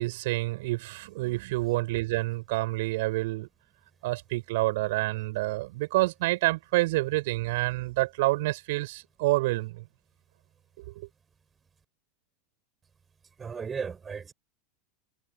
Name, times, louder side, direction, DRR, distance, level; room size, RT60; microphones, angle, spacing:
voice 1, 0.0-3.5 4.0-9.8 10.8-11.1, right 20 dB, 60° right, 7.4 m, -28 dB
voice 2, 13.4-14.3, right 6 dB, 20° right, 6.2 m, -35 dB
figure-of-eight pair, 85°, 0 cm